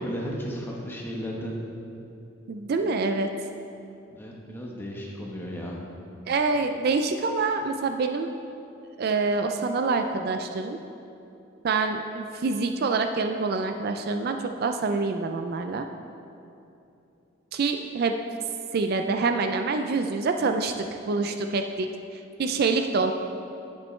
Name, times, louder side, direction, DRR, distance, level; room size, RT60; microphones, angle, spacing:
voice 1, 0.0-1.6 4.1-5.8, equal, 10° left, -2 dB, 1.0 m, -34 dB
voice 2, 2.5-3.3 6.3-8.3 9.0-10.8 11.6-15.9 17.5-18.2 18.7-23.1, right 4 dB, 50° right, 6 dB, 0.4 m, -26 dB
10.0 x 8.2 x 3.2 m, 2.7 s
head